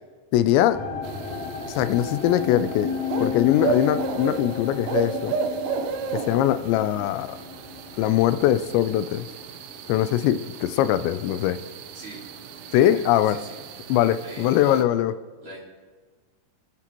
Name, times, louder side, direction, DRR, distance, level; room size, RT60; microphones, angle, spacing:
voice 1, 0.3-0.8 1.7-2.9 3.2-5.3 6.1-7.4 8.0-9.3 9.9-11.6 12.7-13.4 13.9-15.1, left 12 dB, 90° left, 12 dB, 2.9 m, -21 dB
sound 1, 0.7-11.9 12.1-12.8 13.3-13.4, left 6 dB, 55° left, 3.8 m, -34 dB
sound 2, 1.0-14.8, right 6 dB, 80° right, 3.1 m, -34 dB
voice 2, 12.7-13.9 14.2-14.8 15.4-15.6, right 1 dB, 30° right, -5 dB, 3.3 m, -43 dB
24.5 x 9.8 x 3.0 m, 1.4 s
omnidirectional pair, 5.0 m